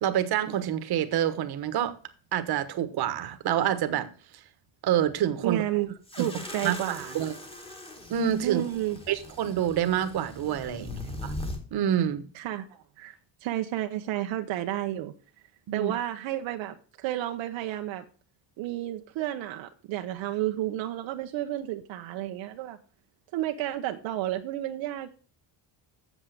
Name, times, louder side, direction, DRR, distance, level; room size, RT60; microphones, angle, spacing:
voice 1, 0.0-1.9 2.3-4.1 4.8-5.6 6.6-7.3 8.1-8.6 9.1-11.3 11.7-12.2 15.7-15.9, right 10 dB, 55° right, 1.3 m, -27 dB
voice 2, 5.4-7.2 8.4-9.0 12.3-15.1 15.7-18.0 18.6-22.8 23.3-25.1, right 14 dB, 80° right, 0.9 m, -31 dB
sound 1, 6.1-11.6, left 1 dB, 10° left, 1.7 m, -40 dB
8.2 x 7.2 x 6.6 m
cardioid pair, 145°, 46 cm